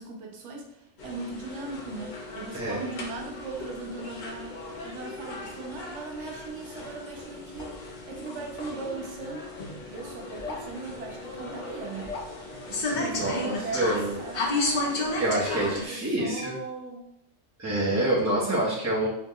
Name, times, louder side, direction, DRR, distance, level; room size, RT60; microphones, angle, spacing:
voice 1, 0.0-9.4 9.9-12.2 12.7-17.0 18.4-18.7, right 3 dB, 70° right, 0 dB, 0.9 m, -39 dB
sound 1, 1.0-15.8, left 2 dB, 55° left, 0.5 m, -35 dB
voice 2, 12.9-14.2 15.2-16.5 17.6-19.1, right 1 dB, 20° right, -8 dB, 0.4 m, -27 dB
2.9 x 2.0 x 3.6 m, 0.80 s
omnidirectional pair, 1.3 m